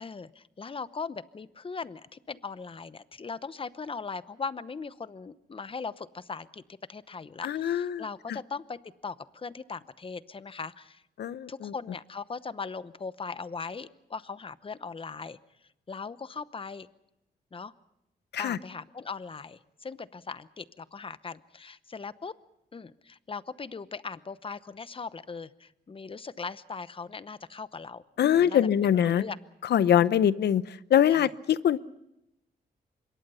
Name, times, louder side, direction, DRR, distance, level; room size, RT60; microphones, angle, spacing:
voice 1, 0.0-6.6 6.9-11.0 11.5-15.4 15.9-16.9 17.5-17.7 18.4-22.3 22.7-29.4 31.1-31.3, left 5 dB, 30° left, 15 dB, 0.8 m, -39 dB
voice 2, 7.4-8.0 8.3-8.4 11.2-11.7 18.3-18.6 28.2-29.2 29.7-31.8, left 10 dB, 85° left, 16 dB, 0.7 m, -23 dB
25.5 x 22.5 x 5.6 m, 0.86 s
cardioid pair, 105°, 17 cm